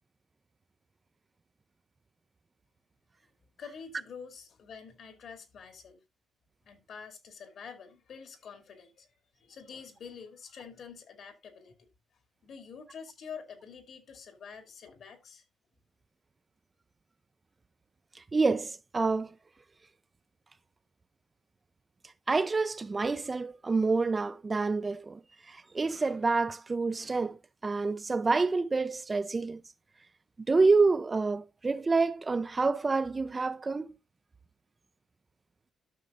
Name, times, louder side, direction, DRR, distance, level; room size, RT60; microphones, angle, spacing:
voice 1, 3.6-6.0 6.7-9.1 9.4-11.7 12.4-15.4, left 6 dB, 60° left, 2.4 m, -47 dB
voice 2, 18.1-19.3 22.3-25.2 25.5-29.6 30.5-33.9, right 3 dB, 25° right, 0.5 m, -28 dB
13.0 x 6.3 x 2.5 m
cardioid pair, 90°, 0 cm